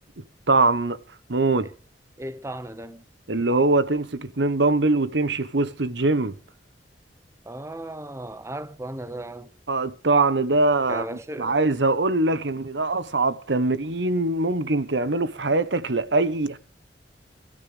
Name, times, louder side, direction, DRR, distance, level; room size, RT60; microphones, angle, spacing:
voice 1, 0.5-1.0 1.3-1.7 3.3-6.4 9.7-11.0 11.4-16.6, right 2 dB, 90° right, 1.3 m, -22 dB
voice 2, 2.2-3.0 7.4-9.5 10.9-11.6, right 1 dB, 15° right, 0.9 m, -36 dB
23.0 x 14.0 x 3.5 m
head